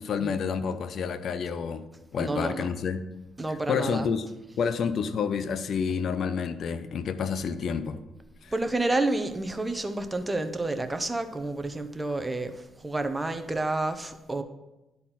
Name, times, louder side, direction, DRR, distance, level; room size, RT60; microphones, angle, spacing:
voice 1, 0.0-1.8 2.1-3.0 3.7-4.3 4.6-8.0 8.4-8.5, left 6 dB, 60° left, 12 dB, 0.5 m, -29 dB
voice 2, 2.2-2.7 3.4-4.1 8.5-14.4, right 2 dB, 15° right, 8 dB, 0.8 m, -29 dB
10.5 x 4.3 x 5.7 m, 0.99 s
cardioid pair, 90°, 0 cm